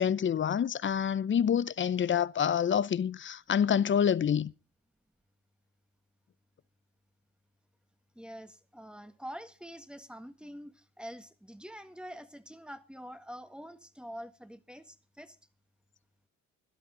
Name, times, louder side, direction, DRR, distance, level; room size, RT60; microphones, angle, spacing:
voice 1, 0.0-4.5, left 8 dB, 40° left, 0.7 m, -27 dB
voice 2, 8.2-15.4, equal, 5° right, 1.6 m, -46 dB
17.0 x 12.5 x 3.9 m
cardioid pair, 90°, 30 cm